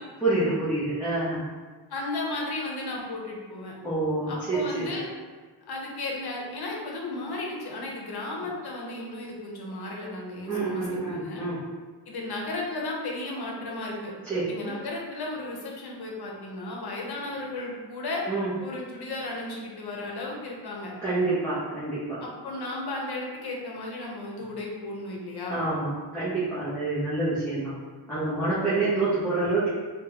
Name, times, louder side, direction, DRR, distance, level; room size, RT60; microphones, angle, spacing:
voice 1, 0.2-1.4 3.8-4.8 10.5-11.6 14.2-14.7 18.3-18.5 21.0-22.2 25.5-27.7 28.1-29.7, right 2 dB, 5° left, -12 dB, 0.9 m, -27 dB
voice 2, 1.9-3.8 4.3-5.1 5.6-11.4 12.1-14.1 14.5-18.2 18.6-20.9 22.2-25.6, left 2 dB, 65° left, -2 dB, 0.8 m, -34 dB
3.6 x 2.4 x 2.8 m, 1.4 s
wide cardioid pair, 105°, 42 cm